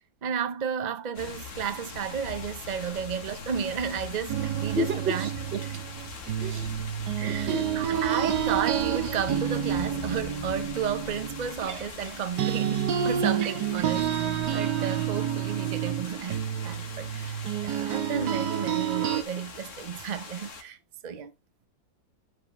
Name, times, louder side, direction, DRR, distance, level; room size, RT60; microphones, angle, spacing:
voice 1, 0.2-5.3 7.2-14.1 14.5-20.8 21.0-21.3, right 7 dB, 70° right, 0.4 m, -33 dB
sound 1, 1.1-20.6, left 5 dB, 50° left, 1.7 m, -42 dB
sound 2, 4.3-12.1 12.4-19.2, right 9 dB, 90° right, 1.5 m, -29 dB
voice 2, 4.6-5.6 6.4-6.7 7.2-7.7 19.3-19.4, right 1 dB, 40° right, 1.2 m, -32 dB
12.5 x 5.0 x 2.9 m
omnidirectional pair, 1.8 m